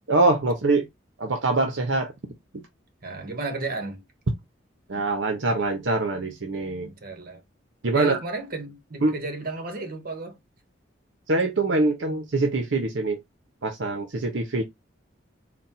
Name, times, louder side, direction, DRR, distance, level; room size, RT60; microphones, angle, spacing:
voice 1, 0.1-0.9 1.2-2.1 4.9-6.9 7.8-8.2 9.0-9.1 11.3-13.2 13.6-14.6, right 2 dB, 75° right, 0.8 m, -24 dB
voice 2, 3.0-4.0 6.8-7.4 7.9-10.4, right 3 dB, 50° right, 1.2 m, -33 dB
4.1 x 2.2 x 4.2 m
head